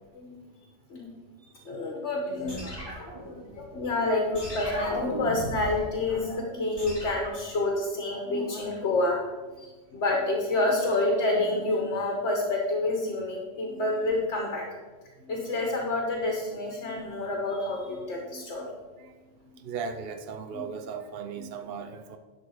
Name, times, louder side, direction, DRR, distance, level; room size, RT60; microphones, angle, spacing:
voice 1, 1.6-2.9 3.3-9.2 9.6-14.6 15.2-18.7 20.5-20.6 21.4-21.5, left 2 dB, 65° left, 0 dB, 1.5 m, -28 dB
sound 1, 2.5-3.8 4.3-5.9 6.8-7.5, equal, 20° left, 2.8 m, -36 dB
voice 2, 19.6-22.2, right 6 dB, 60° right, 7 dB, 0.8 m, -36 dB
11.0 x 4.1 x 6.3 m, 1.3 s
omnidirectional pair, 1.2 m